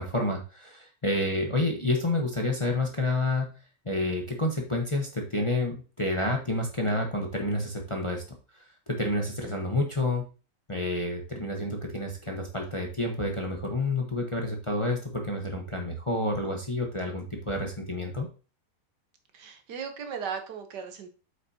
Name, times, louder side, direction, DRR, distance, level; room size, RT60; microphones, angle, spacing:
voice 1, 0.0-3.5 3.8-8.2 8.9-10.3 10.7-18.3, left 2 dB, 20° left, 1 dB, 0.9 m, -29 dB
voice 2, 19.3-21.1, right 6 dB, 80° right, 6 dB, 1.6 m, -37 dB
7.8 x 5.9 x 2.8 m, 0.35 s
omnidirectional pair, 1.8 m